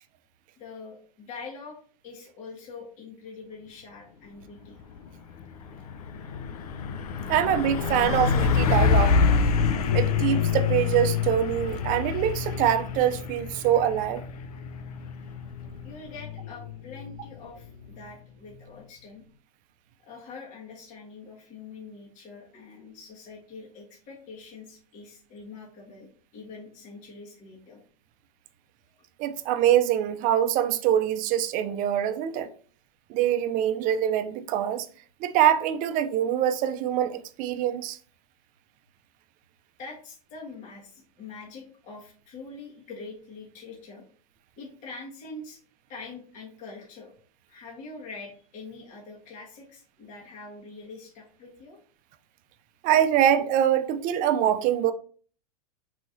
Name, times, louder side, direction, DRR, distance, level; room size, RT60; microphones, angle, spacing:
voice 1, 0.6-4.8 15.8-19.2 20.0-27.8 28.9-29.0 39.8-44.0 44.6-45.6 45.9-47.1 47.5-51.8, left 4 dB, 40° left, 1.4 m, -44 dB
Truck, 4.8-5.1 5.4-18.0, left 5 dB, 80° left, 0.6 m, -27 dB
voice 2, 7.3-9.2 9.9-14.2 29.2-32.5 33.1-34.9 35.2-38.0 52.8-54.9, right 10 dB, 45° right, 0.5 m, -24 dB
4.6 x 4.2 x 2.6 m
hypercardioid pair, 100°, 19 cm